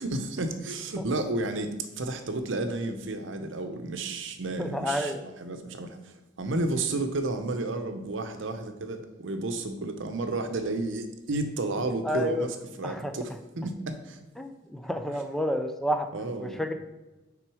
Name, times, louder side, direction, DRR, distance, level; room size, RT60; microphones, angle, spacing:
voice 1, 0.0-14.2 15.1-15.2 16.1-16.7, right 2 dB, 70° right, 7 dB, 0.7 m, -32 dB
voice 2, 4.6-5.2 12.0-12.5 12.8-13.1 14.4-16.1 16.4-16.7, equal, ahead, 6 dB, 0.4 m, -30 dB
6.0 x 3.8 x 4.8 m, 1.1 s
head